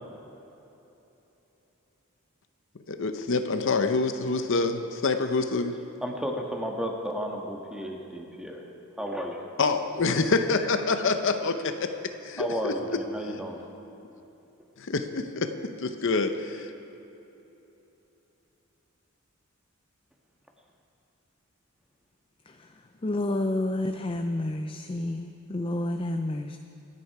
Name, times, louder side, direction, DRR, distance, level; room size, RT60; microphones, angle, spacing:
voice 1, 2.9-5.8 9.6-13.4 14.8-16.7, left 3 dB, 60° left, 8 dB, 0.7 m, -27 dB
voice 2, 6.0-8.6 9.0-9.4 12.4-13.6, equal, 5° right, 0 dB, 1.5 m, -33 dB
voice 3, 23.0-26.6, left 1 dB, 25° left, 6 dB, 0.5 m, -29 dB
25.5 x 9.8 x 4.8 m, 3.0 s
head